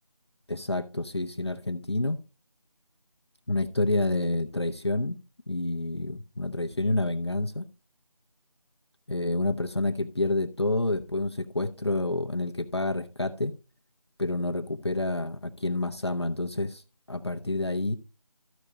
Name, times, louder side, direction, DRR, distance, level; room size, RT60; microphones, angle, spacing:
voice 1, 0.5-2.2 3.5-5.2 5.5-7.7 9.1-13.5 14.2-16.8 17.1-17.9, left 2 dB, 45° left, 0.8 m, -28 dB
13.0 x 5.1 x 4.3 m
figure-of-eight pair, 175°, 19 cm